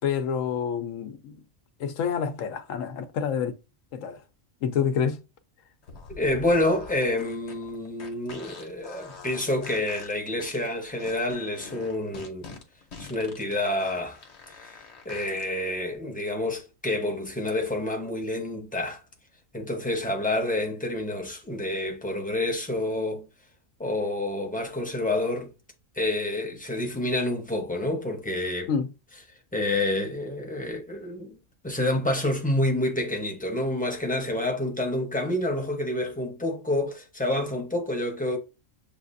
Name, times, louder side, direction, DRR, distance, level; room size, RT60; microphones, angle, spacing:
voice 1, 0.0-1.4 1.8-3.5 3.9-4.2 4.6-5.2 28.7-28.9, left 7 dB, 80° left, 1.0 m, -28 dB
sound 1, 5.8-15.5, left 4 dB, 60° left, 1.2 m, -45 dB
voice 2, 6.1-12.5 13.0-14.2 14.6-14.7 15.0-19.0 19.5-23.3 23.8-25.5 26.0-28.7 29.5-31.4 31.6-38.4, left 1 dB, 10° left, 0.7 m, -28 dB
7.2 x 2.4 x 2.5 m
omnidirectional pair, 1.3 m